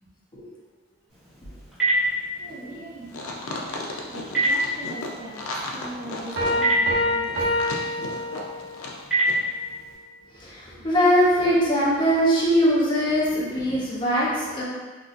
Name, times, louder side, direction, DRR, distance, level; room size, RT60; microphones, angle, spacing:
Telephone, 1.1-9.9, right 1 dB, 5° right, 1.2 m, -29 dB
voice 1, 2.4-3.2 4.1-5.4 5.7-7.4 8.1-8.2, right 1 dB, 45° right, -7 dB, 0.8 m, -40 dB
sound 1, 3.1-9.0 9.2-9.4, left 2 dB, 85° left, 0.5 m, -35 dB
sound 2, 6.4-8.9, left 1 dB, 85° right, 0.8 m, -26 dB
voice 2, 10.3-14.6, equal, 20° left, -7 dB, 0.6 m, -21 dB
3.8 x 2.2 x 2.5 m, 1.4 s
head